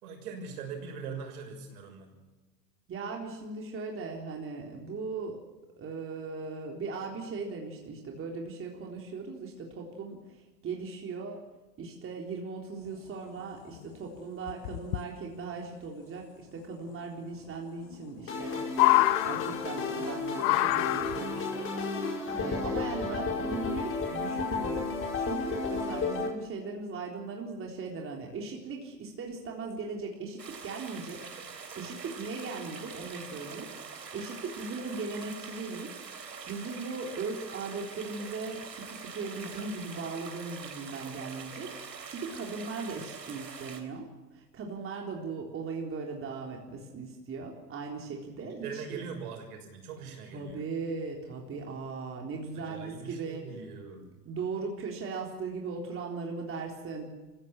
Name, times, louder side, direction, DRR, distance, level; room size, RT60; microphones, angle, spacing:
voice 1, 0.0-2.1 48.4-50.6 52.5-54.0, right 5 dB, 65° right, 3 dB, 6.5 m, -41 dB
voice 2, 2.9-5.4 5.8-11.4 11.8-18.6 19.2-21.8 22.3-35.9 36.5-44.1 44.3-49.0 50.3-53.5 54.3-57.1, right 4 dB, 25° right, 0 dB, 3.8 m, -38 dB
sound 1, 13.4-13.5 13.8-13.9 14.5-15.0 16.6-16.7 17.9-18.4 18.7-19.9 20.4-21.4 22.4-22.5, left 19 dB, 45° left, 1.0 m, -26 dB
sound 2, 18.3-26.3, left 4 dB, 25° left, 5.6 m, -33 dB
sound 3, 30.4-43.8, right 6 dB, 90° right, 3.5 m, -44 dB
26.5 x 16.0 x 7.5 m, 1.2 s
hypercardioid pair, 105°, 49 cm